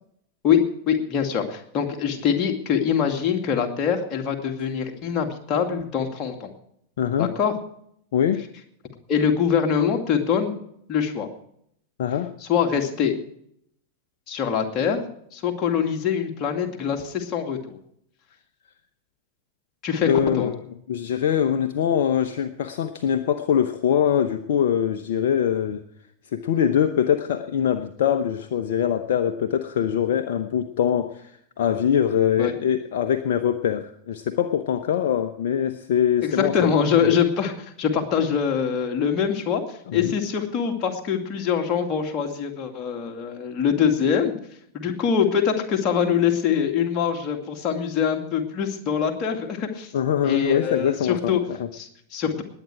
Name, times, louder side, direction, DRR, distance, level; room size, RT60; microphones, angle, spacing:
voice 1, 0.4-6.5 7.2-7.5 9.1-10.6 10.9-11.3 12.4-13.1 14.3-15.0 15.3-17.8 19.8-20.1 20.3-20.5 32.4-32.5 36.2-44.4 44.7-49.9 50.2-51.4 51.7-52.4, left 7 dB, 35° left, 3 dB, 2.4 m, -24 dB
voice 2, 7.0-7.3 8.1-8.4 12.0-12.3 20.0-20.6 20.9-25.8 26.3-31.3 31.6-36.7 37.0-37.2 39.9-40.1 49.9-51.6, left 9 dB, 55° left, 9 dB, 0.8 m, -23 dB
20.0 x 9.1 x 4.8 m, 0.69 s
figure-of-eight pair, 90°, 0 cm